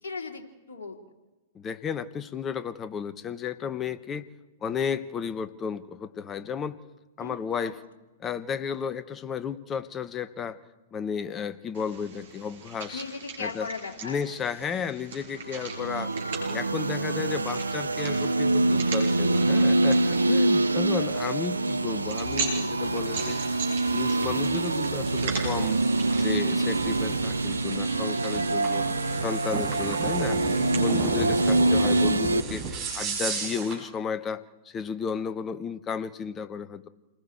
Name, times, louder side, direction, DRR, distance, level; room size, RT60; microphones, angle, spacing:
voice 1, 0.0-0.4 0.7-1.0 7.2-7.7 12.9-14.2 20.2-20.6 28.7-29.1, left 4 dB, 65° left, 2 dB, 2.9 m, -38 dB
voice 2, 1.5-4.3 4.6-6.8 7.2-7.8 8.2-10.6 10.9-13.0 13.4-13.7 14.0-16.1 16.5-23.4 23.9-25.8 26.1-28.9 29.2-30.4 30.7-32.6 32.9-36.9, left 6 dB, 20° left, 14 dB, 1.0 m, -33 dB
sound 1, 11.7-30.7, right 5 dB, 55° right, 6.5 m, -41 dB
sound 2, 15.5-32.4, right 2 dB, 80° right, 0.7 m, -25 dB
sound 3, 22.8-33.8, right 5 dB, 25° right, 7.4 m, -35 dB
28.5 x 20.0 x 4.6 m, 1.1 s
figure-of-eight pair, 105°, 0 cm